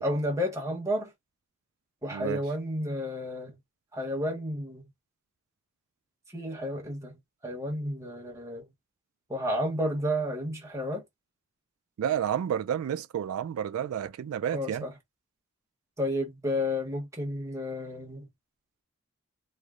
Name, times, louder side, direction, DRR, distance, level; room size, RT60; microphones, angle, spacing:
voice 1, 0.0-1.1 2.0-3.6 3.9-4.9 6.3-8.7 9.3-11.0 14.5-15.0 16.0-18.3, equal, 15° right, 1.0 m, -31 dB
voice 2, 12.0-14.9, right 9 dB, 85° right, 0.3 m, -30 dB
3.2 x 2.0 x 3.6 m
head